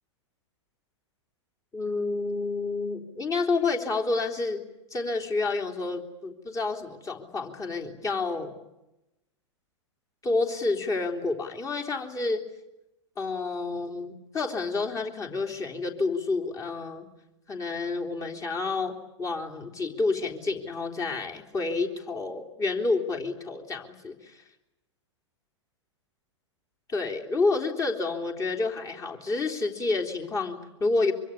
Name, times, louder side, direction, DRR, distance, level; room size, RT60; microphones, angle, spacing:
voice 1, 1.7-4.6 4.9-8.5 10.2-12.4 13.2-17.0 17.5-24.4 26.9-31.1, left 3 dB, 20° left, 2 dB, 3.5 m, -29 dB
24.5 x 24.5 x 9.9 m, 0.94 s
figure-of-eight pair, 100°, 16 cm